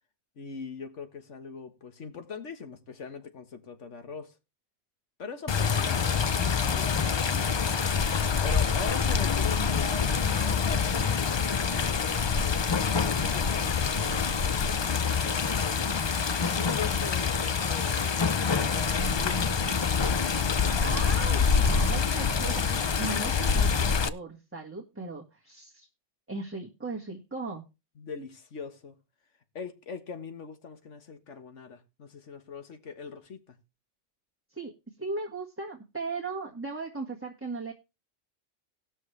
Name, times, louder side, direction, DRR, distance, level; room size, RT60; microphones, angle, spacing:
voice 1, 0.4-4.3 5.2-7.7 8.4-16.0 16.4-18.1 18.5-19.8 20.1-20.9 28.0-29.0 29.6-33.6, left 5 dB, 80° left, 1.7 m, -41 dB
Water, 5.5-24.1, left 6 dB, 45° left, 0.3 m, -26 dB
voice 2, 20.8-25.9 26.3-27.6 34.5-34.7 35.0-37.7, right 3 dB, 10° right, 1.5 m, -37 dB
19.0 x 6.4 x 3.3 m
omnidirectional pair, 1.2 m